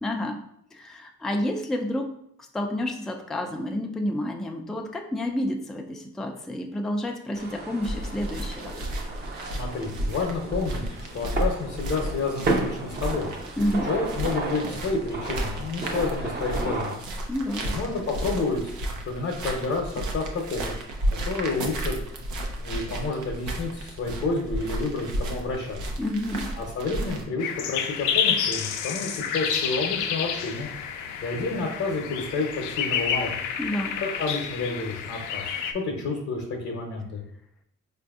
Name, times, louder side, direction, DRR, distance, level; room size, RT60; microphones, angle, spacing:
voice 1, 0.0-2.1 2.4-8.7 13.6-13.9 17.3-17.7 26.0-26.6 33.6-34.0, left 1 dB, ahead, 3 dB, 0.3 m, -30 dB
sound 1, 7.3-17.0, right 2 dB, 35° right, 0.7 m, -33 dB
sound 2, 7.8-27.2, right 1 dB, 75° right, 0.7 m, -33 dB
voice 2, 9.5-13.3 13.8-17.0 17.6-18.7 19.1-20.6 21.1-22.0 22.6-25.8 26.6-30.7 31.2-33.3 34.0-37.2, left 3 dB, 50° left, 1 dB, 0.8 m, -30 dB
sound 3, 27.4-35.7, left 7 dB, 85° left, 0.5 m, -29 dB
4.5 x 2.6 x 2.4 m, 0.73 s
cardioid pair, 90°, 30 cm